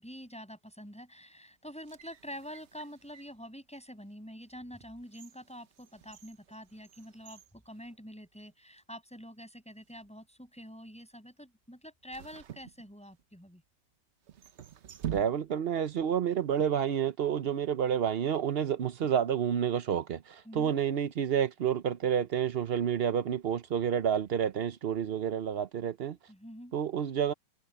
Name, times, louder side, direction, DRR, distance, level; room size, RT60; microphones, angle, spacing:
voice 1, 0.0-13.6 20.4-20.7 26.3-26.7, equal, 5° left, 6.6 m, -47 dB
sound 1, 1.7-3.4 4.0-4.2 4.7-8.5 8.8-8.9 9.7-10.1 12.1-13.4 14.2-15.8 16.1-16.2, right 10 dB, 55° right, 0.8 m, -46 dB
voice 2, 15.1-26.2 26.7-27.3, right 8 dB, 80° right, 0.5 m, -29 dB
omnidirectional pair, 1.9 m